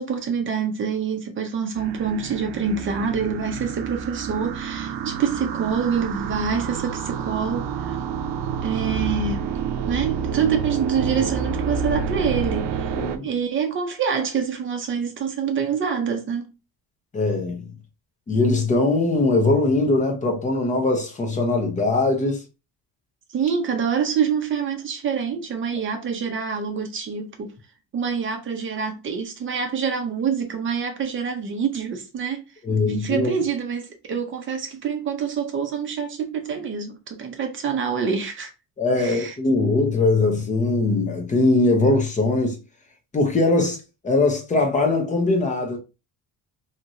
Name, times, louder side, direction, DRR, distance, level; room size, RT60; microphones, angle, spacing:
voice 1, 0.0-8.0 8.6-9.5 9.9-12.7 13.2-16.5 23.3-27.5 27.9-32.4 32.9-38.5 39.0-39.3, right 6 dB, 30° right, 0.7 m, -26 dB
sound 1, 1.7-13.2, right 6 dB, 80° right, 0.6 m, -29 dB
voice 2, 13.0-13.3 17.1-17.7 18.3-22.4 32.6-33.3 38.8-42.6 43.1-43.8 44.0-45.8, left 2 dB, 20° left, 0.7 m, -21 dB
2.9 x 2.8 x 2.6 m
cardioid pair, 155°, 39 cm